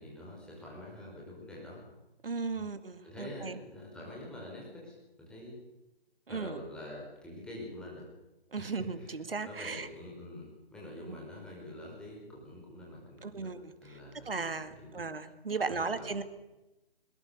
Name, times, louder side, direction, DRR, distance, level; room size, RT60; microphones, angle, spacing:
voice 1, 0.0-1.8 2.6-2.7 3.0-5.5 6.3-8.1 8.6-9.1 9.5-13.5 13.8-15.0 15.7-16.2, left 1 dB, 5° left, -4 dB, 5.4 m, -46 dB
voice 2, 2.2-3.6 6.3-6.6 8.5-9.9 11.1-11.2 13.2-13.7 14.3-16.2, right 4 dB, 65° right, 11 dB, 2.1 m, -36 dB
22.0 x 20.5 x 6.8 m, 0.99 s
figure-of-eight pair, 140°, 31 cm